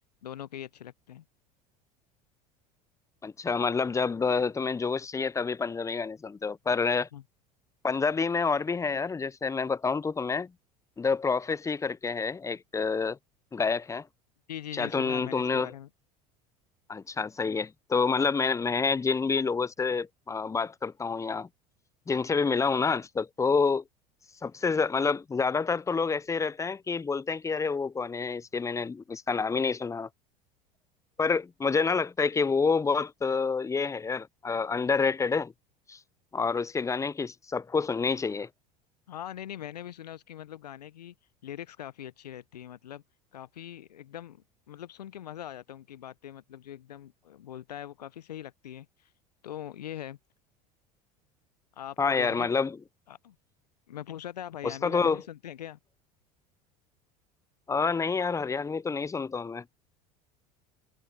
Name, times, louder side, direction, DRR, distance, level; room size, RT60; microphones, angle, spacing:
voice 1, 0.2-1.2 7.1-7.2 14.5-15.9 39.1-41.1 41.4-43.0 43.3-49.1 49.4-50.2 51.7-52.5 53.1-53.4 53.9-55.8, left 11 dB, 85° left, 0.7 m, -42 dB
voice 2, 3.2-7.1 7.8-10.5 11.0-13.2 13.5-14.1 14.7-15.7 16.9-21.5 22.1-23.8 24.4-30.1 31.2-35.5 35.9-36.0 36.3-38.5 52.0-52.8 54.6-55.2 57.7-59.6, left 5 dB, 15° left, 0.6 m, -28 dB
hypercardioid pair, 75°, 20 cm